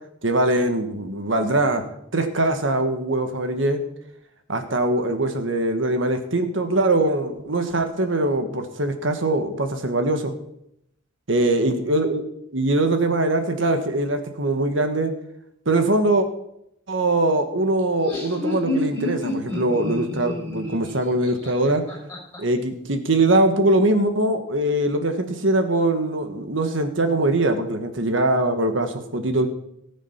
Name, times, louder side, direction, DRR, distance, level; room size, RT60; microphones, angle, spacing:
voice 1, 0.2-1.8 2.1-3.8 4.5-10.3 11.3-12.2 12.5-15.1 15.6-16.3 16.9-21.8 22.4-29.5, right 2 dB, 70° right, 7 dB, 1.6 m, -22 dB
Laughter, 17.8-22.4, left 2 dB, 10° left, 6.7 m, -29 dB
18.5 x 7.2 x 5.8 m, 0.77 s
head